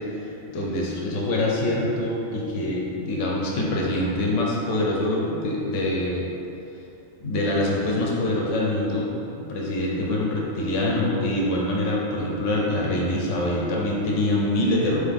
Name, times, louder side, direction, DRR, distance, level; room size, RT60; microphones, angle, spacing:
voice 1, 0.1-6.3 7.2-15.0, left 1 dB, 90° left, -3 dB, 1.1 m, -25 dB
3.8 x 3.4 x 3.5 m, 2.8 s
omnidirectional pair, 1.2 m